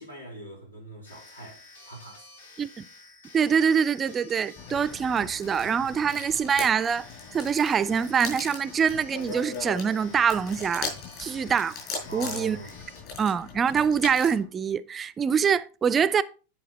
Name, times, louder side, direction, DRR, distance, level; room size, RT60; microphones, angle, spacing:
voice 1, 0.0-2.3 12.1-12.7, right 1 dB, 85° left, 3.7 m, -42 dB
sound 1, 1.1-13.0, left 2 dB, 65° left, 2.4 m, -51 dB
voice 2, 3.3-7.1 7.3-10.9 11.2-11.8 12.1-12.6 13.2-16.2, right 7 dB, 20° right, 0.4 m, -24 dB
sound 2, 4.6-14.4, left 4 dB, 40° left, 5.0 m, -39 dB
10.0 x 5.3 x 4.0 m
figure-of-eight pair, 90°, 0 cm